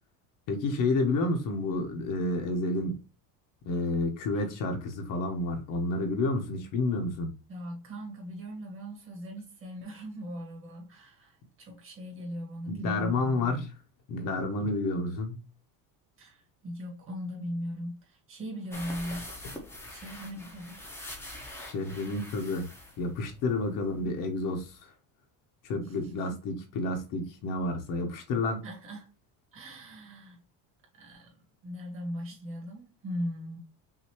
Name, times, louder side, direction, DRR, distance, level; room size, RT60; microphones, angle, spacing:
voice 1, 0.5-3.0 3.7-7.3 12.7-13.6 14.1-15.4 21.6-22.7 23.0-24.8 25.6-28.6, left 2 dB, 50° left, 1.0 m, -30 dB
voice 2, 7.5-13.6 16.2-19.3 19.9-20.8 25.8-26.3 28.6-29.1 29.5-30.4 31.0-31.3 31.6-33.6, equal, 30° right, 2.1 m, -39 dB
sound 1, 18.7-24.0 24.3-24.4 24.7-24.8, left 1 dB, 5° left, 0.9 m, -44 dB
5.8 x 2.7 x 3.0 m
cardioid pair, 160°, 39 cm